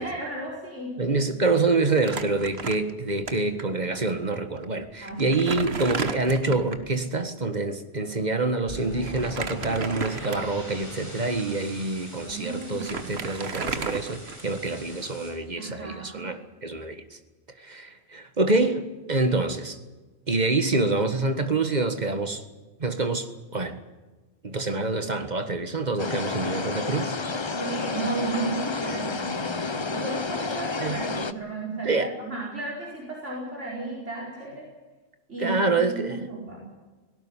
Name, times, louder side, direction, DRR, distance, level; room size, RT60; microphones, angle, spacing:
voice 1, 0.0-0.9 5.0-5.5 12.2-13.2 15.6-16.2 27.6-34.7 35.3-36.8, right 3 dB, 85° right, -4 dB, 5.0 m, -34 dB
voice 2, 1.0-17.0 17.6-19.8 20.3-22.4 22.8-23.8 24.4-27.2 30.8-31.0 31.9-32.1 35.4-36.2, right 3 dB, 40° right, 8 dB, 1.8 m, -26 dB
Crumpling crinkling, 2.0-3.3 3.6-3.7 4.6-4.7 5.1-6.9 9.1-10.7 11.3-11.4 12.3-12.4 12.6-14.7, right 4 dB, 60° right, 1.6 m, -33 dB
sound 1, 8.7-15.3, equal, 15° right, 6.8 m, -42 dB
sound 2, 26.0-31.3, left 4 dB, 25° left, 0.8 m, -30 dB
18.0 x 17.5 x 9.8 m, 1.2 s
omnidirectional pair, 1.2 m